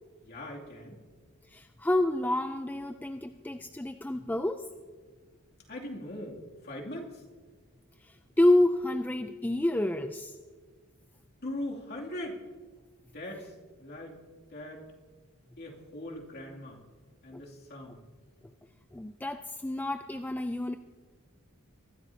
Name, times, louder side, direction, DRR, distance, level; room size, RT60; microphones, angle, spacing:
voice 1, 0.2-1.0 5.7-7.2 11.4-12.4 13.1-14.2 14.5-14.8 15.6-16.8 17.2-18.0, left 1 dB, 50° left, -2 dB, 2.6 m, -40 dB
voice 2, 1.5-4.7 8.0-10.4 17.3-17.4 18.9-20.8, left 1 dB, 10° left, 7 dB, 0.4 m, -28 dB
23.5 x 12.5 x 2.8 m, 1.5 s
head